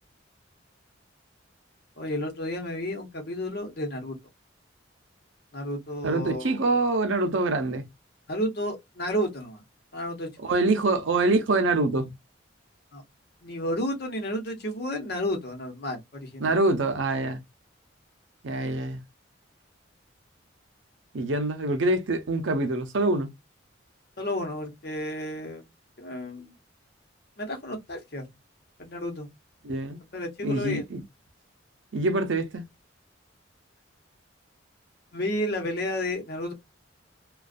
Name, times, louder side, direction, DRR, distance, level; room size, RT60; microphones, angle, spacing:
voice 1, 2.0-4.2 5.5-6.8 8.3-9.6 9.9-10.3 12.9-13.0 13.4-16.5 24.2-25.6 26.0-26.5 27.4-28.3 28.8-29.3 30.1-30.8 35.1-36.5, equal, 55° left, 0.9 m, -31 dB
voice 2, 6.0-7.8 10.4-12.1 16.4-17.4 18.4-19.0 21.1-23.3 29.6-30.0 30.4-31.0 31.9-32.6, right 2 dB, 70° right, 0.6 m, -25 dB
2.4 x 2.3 x 2.4 m
head